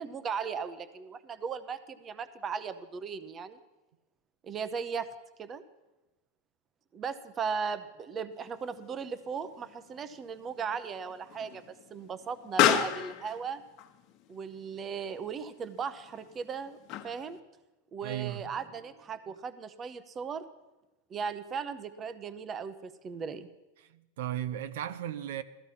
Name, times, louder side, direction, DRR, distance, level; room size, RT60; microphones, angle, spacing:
voice 1, 0.0-3.6 4.4-5.1 5.4-5.6 6.9-11.6 11.9-13.6 14.3-16.8 17.0-17.4 17.9-20.5 21.1-23.5, right 6 dB, 20° right, 0.7 m, -37 dB
Explosion, 8.4-17.4, left 10 dB, 40° left, 1.2 m, -34 dB
voice 2, 18.0-18.4 23.9-25.4, right 11 dB, 70° right, 0.8 m, -35 dB
16.0 x 14.0 x 5.7 m
supercardioid pair, 155°, 0 cm